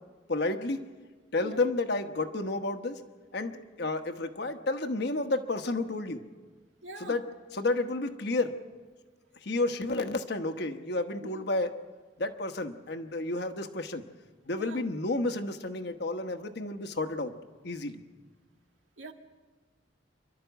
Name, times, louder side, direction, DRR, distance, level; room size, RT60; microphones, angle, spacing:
voice 1, 0.3-0.8 1.3-3.0 3.3-6.2 7.0-7.2 7.5-8.6 9.4-11.7 12.2-14.0 14.5-17.3 17.6-18.0, left 2 dB, 60° left, 1.1 m, -31 dB
voice 2, 6.8-7.2 11.2-11.4 14.6-14.8 19.0-19.1, right 2 dB, 90° right, 1.9 m, -44 dB
27.5 x 12.0 x 8.0 m
head